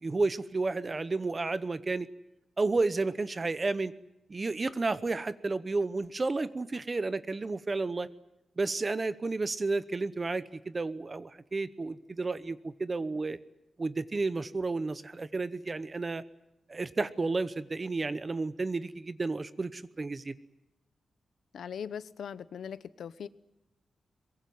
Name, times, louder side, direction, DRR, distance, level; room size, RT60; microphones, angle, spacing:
voice 1, 0.0-2.1 2.6-3.9 4.3-8.1 8.6-13.4 13.8-16.2 16.7-20.3, right 3 dB, 25° right, 15 dB, 0.8 m, -31 dB
voice 2, 21.5-23.3, left 7 dB, 80° left, 15 dB, 1.0 m, -40 dB
23.0 x 22.5 x 9.4 m, 0.92 s
wide cardioid pair, 160°, 0 cm